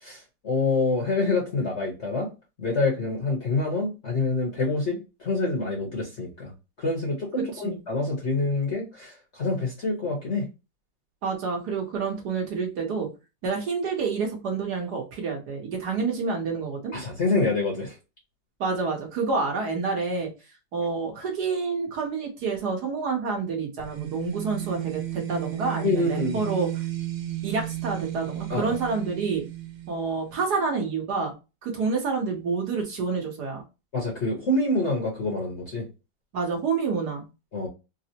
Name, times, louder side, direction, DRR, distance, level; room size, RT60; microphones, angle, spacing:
voice 1, 0.0-2.3 2.6-6.5 6.8-10.5 16.9-18.0 25.8-26.4 28.5-28.8 33.9-35.9 37.5-37.7, left 3 dB, 45° left, 1.1 m, -26 dB
voice 2, 7.4-7.8 11.2-13.1 13.4-16.9 18.6-20.3 20.7-26.8 27.4-29.5 29.9-31.3 31.6-33.6 36.3-37.2, right 4 dB, 60° right, 1.4 m, -28 dB
sound 1, 23.8-30.5, right 14 dB, 90° right, 1.6 m, -34 dB
4.0 x 2.0 x 2.8 m
omnidirectional pair, 2.1 m